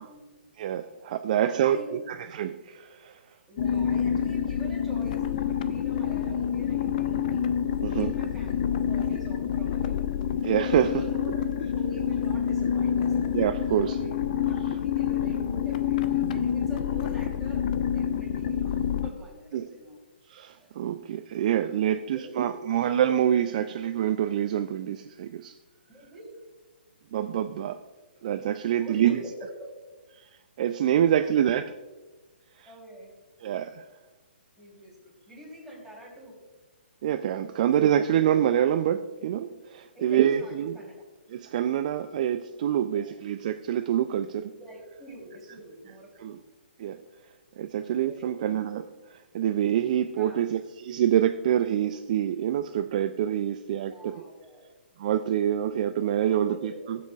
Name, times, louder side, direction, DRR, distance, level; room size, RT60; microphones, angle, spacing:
voice 1, 0.0-0.4 1.3-2.1 3.5-7.5 7.8-10.4 10.7-13.1 13.6-20.0 20.6-20.8 22.1-22.9 25.9-26.3 28.8-29.7 31.1-31.5 32.6-33.1 34.6-36.4 39.9-41.0 42.8-43.2 44.6-46.4 48.0-48.3 50.1-50.6 53.9-54.7 55.9-56.9, right 1 dB, ahead, -6 dB, 3.3 m, -45 dB
voice 2, 0.6-3.2 7.8-8.1 10.4-11.4 13.3-14.0 19.5-19.7 20.3-25.5 27.1-27.8 28.2-29.2 30.2-30.3 30.6-31.7 32.6-32.7 33.4-33.8 37.0-40.8 41.3-44.5 46.2-46.4 46.8-47.0 47.6-54.2 55.0-57.0, right 10 dB, 45° right, 10 dB, 0.4 m, -26 dB
sound 1, 3.6-19.1, left 8 dB, 45° left, 0.5 m, -27 dB
15.0 x 7.5 x 2.4 m, 1.2 s
figure-of-eight pair, 135°, 6 cm